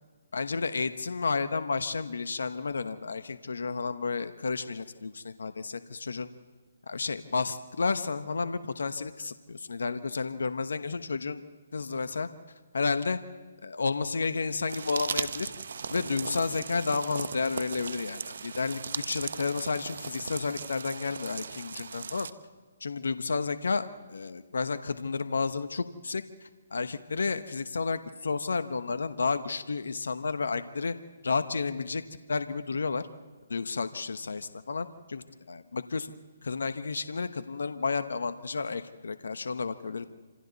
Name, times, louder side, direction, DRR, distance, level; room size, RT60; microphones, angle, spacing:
voice 1, 0.3-6.3 6.9-11.4 11.7-12.3 12.7-13.2 13.6-15.5 15.9-22.3 22.8-30.9 31.2-32.0 32.3-33.1 33.5-36.1 36.4-40.0, left 4 dB, 75° left, 11 dB, 1.0 m, -31 dB
sound 1, 14.7-22.3, right 5 dB, 70° right, 1.0 m, -37 dB
27.5 x 26.5 x 4.1 m, 1.4 s
hypercardioid pair, 145°, 0 cm